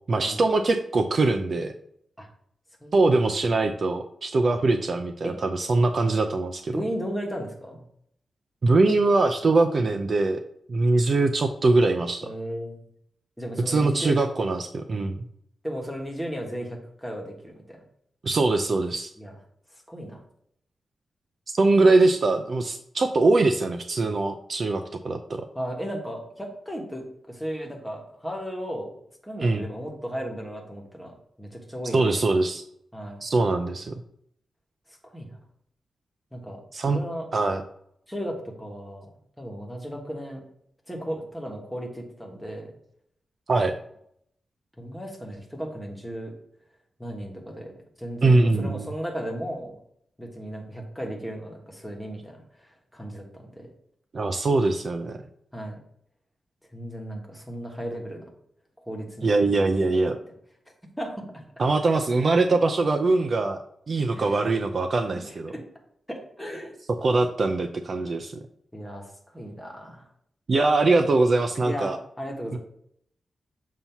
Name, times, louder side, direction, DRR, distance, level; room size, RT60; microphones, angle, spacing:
voice 1, 0.1-1.7 2.9-6.8 8.6-10.4 10.7-12.3 13.7-15.2 18.2-19.1 21.5-25.5 29.4-29.6 31.9-32.6 33.2-33.9 36.7-37.0 37.3-37.6 43.5-43.8 48.2-48.9 54.1-55.2 59.2-60.2 61.6-63.6 63.9-65.5 67.0-68.4 70.5-72.0 72.5-72.6, right 3 dB, 45° right, 6 dB, 0.4 m, -22 dB
voice 2, 6.7-7.8 12.2-12.8 13.4-14.3 15.6-17.8 19.2-19.3 19.7-20.2 25.5-28.9 29.2-32.4 32.9-33.2 34.9-35.4 36.3-37.3 38.1-39.1 39.4-40.4 40.9-42.7 44.8-46.4 47.0-47.7 48.0-49.7 50.2-53.7 55.5-55.8 56.7-58.3 58.8-60.2 61.0-61.4 64.1-64.4 65.2-65.6 66.1-66.8 68.7-70.1 71.6-72.6, equal, ahead, 0 dB, 1.3 m, -35 dB
7.3 x 2.7 x 5.8 m, 0.69 s
wide cardioid pair, 150°, 0 cm